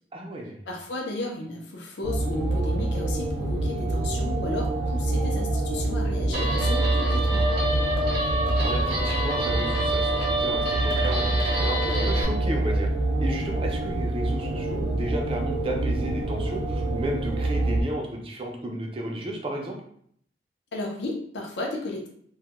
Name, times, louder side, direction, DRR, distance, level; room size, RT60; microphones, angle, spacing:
voice 1, 0.1-0.6 8.2-12.9 13.2-19.8, right 1 dB, 30° right, 1 dB, 0.4 m, -33 dB
voice 2, 0.7-7.5 20.7-22.1, left 2 dB, 75° left, 0 dB, 0.5 m, -34 dB
sound 1, 2.0-17.8, right 2 dB, 85° right, 0.5 m, -26 dB
Guitar, 6.3-12.2, right 1 dB, 60° right, 0.8 m, -28 dB
2.2 x 2.1 x 2.9 m, 0.65 s
head